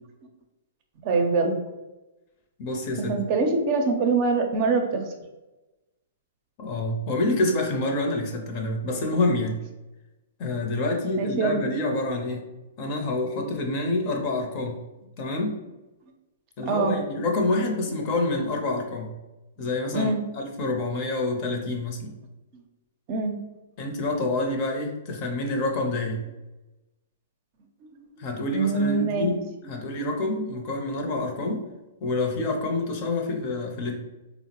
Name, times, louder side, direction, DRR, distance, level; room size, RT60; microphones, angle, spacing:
voice 1, 1.0-1.6 3.0-5.1 11.2-11.7 16.7-17.0 19.6-19.7 19.9-20.2 23.1-23.4 28.5-29.3, right 4 dB, 45° right, 3 dB, 0.5 m, -24 dB
voice 2, 2.6-3.1 6.6-9.6 10.4-12.4 12.8-14.8 15.2-15.6 16.6-19.1 19.6-20.1 20.4-22.1 23.8-26.2 28.2-29.3 29.7-31.7 32.0-34.0, left 2 dB, 45° left, 2 dB, 0.6 m, -27 dB
3.7 x 2.0 x 2.9 m, 1.0 s
hypercardioid pair, 125°, 0 cm